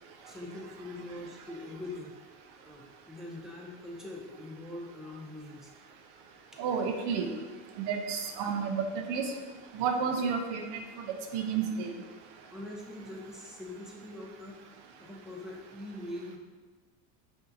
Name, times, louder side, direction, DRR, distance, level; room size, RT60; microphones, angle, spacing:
voice 1, 0.3-2.1 2.6-5.7 12.5-14.6 15.0-16.4, left 1 dB, ahead, -3 dB, 0.6 m, -43 dB
voice 2, 6.6-7.3 7.8-9.3 9.7-10.7 11.0-11.1 11.3-11.9, right 6 dB, 60° right, 4 dB, 0.7 m, -31 dB
5.3 x 2.8 x 2.6 m, 1.3 s
supercardioid pair, 105°, 45 cm